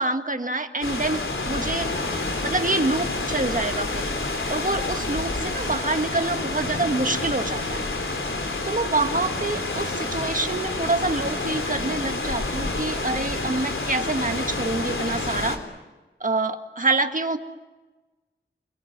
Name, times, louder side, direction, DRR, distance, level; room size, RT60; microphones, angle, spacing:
voice 1, 0.0-1.9 2.4-4.1 4.5-7.9 8.7-15.6 16.2-17.4, right 2 dB, 40° right, 7 dB, 1.8 m, -26 dB
sound 1, 0.8-15.6, left 2 dB, 85° left, 3.6 m, -28 dB
28.5 x 22.0 x 7.5 m, 1.2 s
wide cardioid pair, 65°, 20 cm